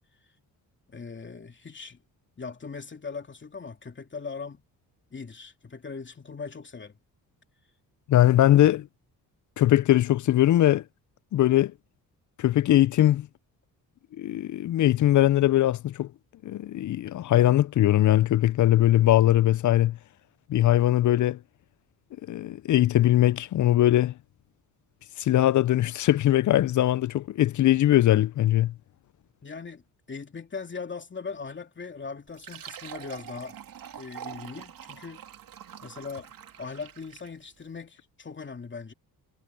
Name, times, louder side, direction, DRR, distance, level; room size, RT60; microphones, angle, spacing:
voice 1, 0.9-2.0 2.4-4.6 5.1-6.9 29.4-29.8 30.1-33.6 34.0-35.2 35.8-36.3 36.6-38.9, left 5 dB, 30° left, 2.8 m, -39 dB
voice 2, 8.1-8.9 9.6-10.8 11.3-11.7 12.4-13.3 14.2-16.1 16.4-20.0 20.5-21.4 22.3-24.1 25.2-28.7, left 13 dB, 50° left, 0.5 m, -21 dB
Fill (with liquid), 32.3-37.4, right 10 dB, 65° right, 3.0 m, -44 dB
cardioid pair, 90°, 37 cm